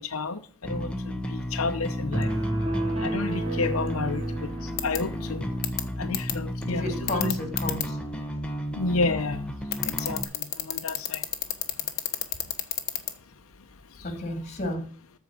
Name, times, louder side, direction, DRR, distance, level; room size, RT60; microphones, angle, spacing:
voice 1, 0.0-2.4 3.0-5.5 6.0-7.3 8.7-9.5 9.8-11.2, left 3 dB, 85° left, 0.8 m, -31 dB
Bass guitar, 0.6-10.2, equal, 5° left, 1.1 m, -33 dB
sound 1, 2.1-5.7, right 1 dB, 30° right, 2.4 m, -31 dB
sound 2, 4.8-5.0 5.6-5.8 6.1-6.3 7.1-7.8 9.7-13.1, left 13 dB, 50° left, 1.2 m, -27 dB
voice 2, 6.7-8.0 14.0-14.8, left 1 dB, 35° left, 2.8 m, -31 dB
14.0 x 4.7 x 7.3 m
head